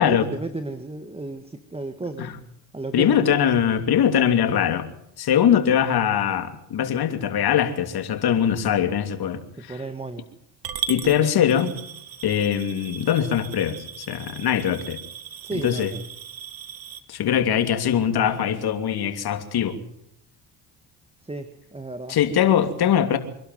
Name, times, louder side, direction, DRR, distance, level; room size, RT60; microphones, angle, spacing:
voice 1, 0.0-2.3 2.7-3.1 8.3-8.5 9.6-10.2 15.4-16.0 21.2-22.2, right 2 dB, 15° right, 9 dB, 1.7 m, -33 dB
voice 2, 2.9-4.9 5.2-9.8 10.9-11.7 12.2-15.0 15.6-15.9 17.1-19.8 22.1-23.2, left 9 dB, 60° left, 8 dB, 2.9 m, -22 dB
Coin (dropping) / Glass, 10.6-17.0, right 8 dB, 55° right, 2.0 m, -37 dB
26.0 x 12.0 x 9.4 m, 0.75 s
supercardioid pair, 85°, 43 cm